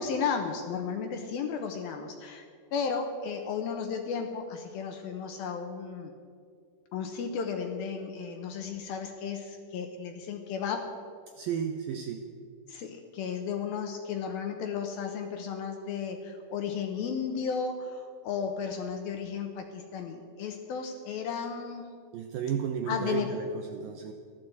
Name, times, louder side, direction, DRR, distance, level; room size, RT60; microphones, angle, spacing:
voice 1, 0.0-2.4 2.7-6.1 6.9-10.8 12.7-21.9 22.9-23.3, left 6 dB, 75° left, 5 dB, 2.4 m, -34 dB
voice 2, 11.4-12.3 22.1-24.1, right 7 dB, 85° right, 4 dB, 2.1 m, -33 dB
14.5 x 12.5 x 7.8 m, 2.2 s
omnidirectional pair, 5.2 m